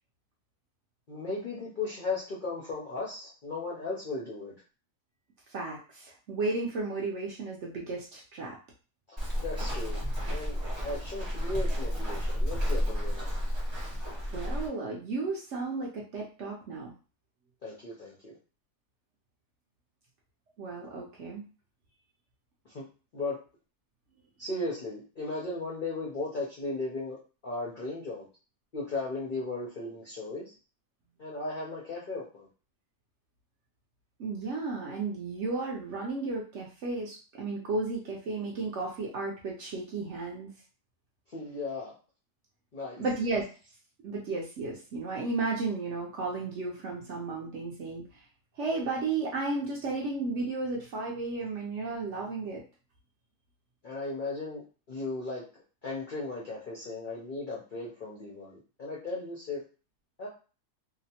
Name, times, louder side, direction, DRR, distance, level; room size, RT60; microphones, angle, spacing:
voice 1, 1.1-4.5 9.4-10.0 10.3-13.5 17.6-18.3 22.6-22.9 23.1-23.4 24.4-27.2 27.4-28.3 28.7-30.5 31.2-32.5 41.3-41.9 42.7-43.0 53.8-55.4 55.8-59.6 60.2-60.3, left 3 dB, 60° left, -5 dB, 0.5 m, -36 dB
voice 2, 5.5-8.6 14.3-16.9 20.6-21.4 34.2-40.5 43.0-43.4 44.0-48.2 48.5-52.6, right 3 dB, 65° right, -2 dB, 0.7 m, -33 dB
Walk footsteps, 9.2-14.7, equal, 50° right, 0.3 m, -31 dB
2.8 x 2.0 x 2.7 m, 0.35 s
omnidirectional pair, 1.6 m